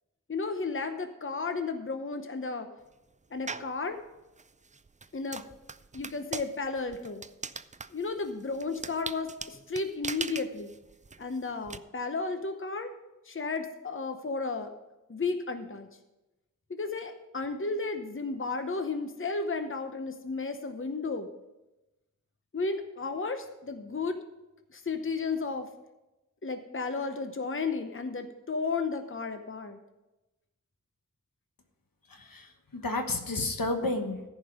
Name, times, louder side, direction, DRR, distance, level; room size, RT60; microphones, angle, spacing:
voice 1, 0.3-2.7 3.3-4.0 5.1-5.4 5.9-7.2 7.9-10.7 11.2-12.9 13.3-14.8 15.1-15.9 16.7-21.3 22.5-24.2 24.7-25.7 26.4-29.8, left 4 dB, 40° left, 7 dB, 0.8 m, -33 dB
sound 1, 3.5-3.8 4.4-11.8, right 4 dB, 25° right, 0.4 m, -40 dB
voice 2, 32.1-34.2, left 2 dB, 85° left, 5 dB, 1.3 m, -31 dB
14.0 x 5.4 x 6.2 m, 1.0 s
wide cardioid pair, 65°, 33 cm